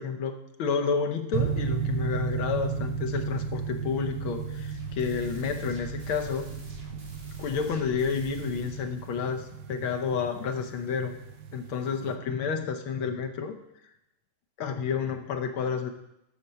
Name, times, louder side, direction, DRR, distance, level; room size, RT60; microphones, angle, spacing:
voice 1, 0.0-6.5 7.4-11.1 11.5-13.6 14.6-15.9, left 6 dB, 75° left, 6 dB, 1.7 m, -30 dB
sound 1, 1.3-12.1, right 6 dB, 65° right, 1.1 m, -34 dB
sound 2, 4.3-9.1, right 1 dB, 30° right, 1.5 m, -47 dB
12.0 x 4.4 x 6.8 m, 0.86 s
omnidirectional pair, 2.3 m